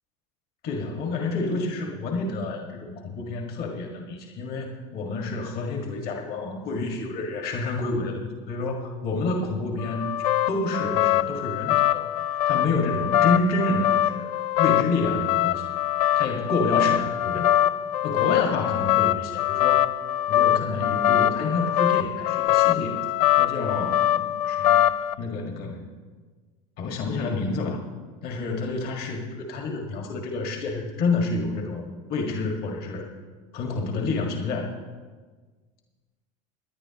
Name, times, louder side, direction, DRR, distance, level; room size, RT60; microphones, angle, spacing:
voice 1, 0.6-14.3 14.6-15.7 16.2-17.7 18.0-19.8 20.3-24.8 25.2-25.8 26.8-27.8 28.2-33.1 33.5-34.7, left 3 dB, 55° left, 2 dB, 1.8 m, -29 dB
sound 1, 9.8-25.1, left 12 dB, 75° left, 0.5 m, -23 dB
19.0 x 10.0 x 2.9 m, 1.4 s
hypercardioid pair, 90°, 19 cm